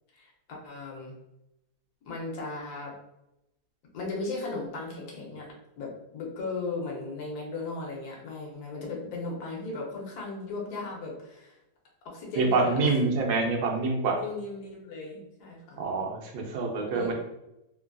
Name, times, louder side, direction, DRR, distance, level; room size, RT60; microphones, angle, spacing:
voice 1, 0.1-1.1 2.0-2.9 3.9-11.6 12.0-12.9 14.2-15.8 16.7-17.1, left 3 dB, 75° left, -2 dB, 1.3 m, -36 dB
voice 2, 12.4-14.2 15.8-17.1, right 3 dB, 75° right, 0 dB, 1.2 m, -26 dB
3.2 x 2.4 x 2.2 m, 0.88 s
omnidirectional pair, 1.7 m